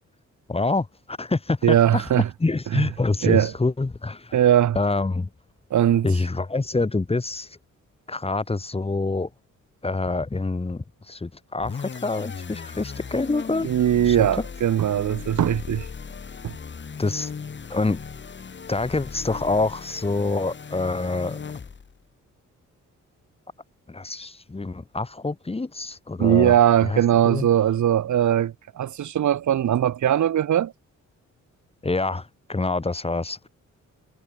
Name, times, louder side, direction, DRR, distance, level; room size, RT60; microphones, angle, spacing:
voice 1, 0.5-2.1 2.4-4.4 4.7-5.3 6.0-7.6 8.1-9.3 9.8-13.7 14.0-14.3 17.0-17.3 17.7-18.0 18.7-21.4 23.9-26.6 26.8-27.5 31.8-33.5, left 3 dB, 20° left, 5.2 m, -26 dB
voice 2, 1.6-2.3 2.7-2.9 3.2-3.5 4.3-4.8 5.7-6.0 13.6-15.9 16.4-16.5 26.2-30.7, right 10 dB, 70° right, 2.6 m, -20 dB
sound 1, 11.6-22.0, left 5 dB, 35° left, 6.1 m, -37 dB
cardioid pair, 125°, 31 cm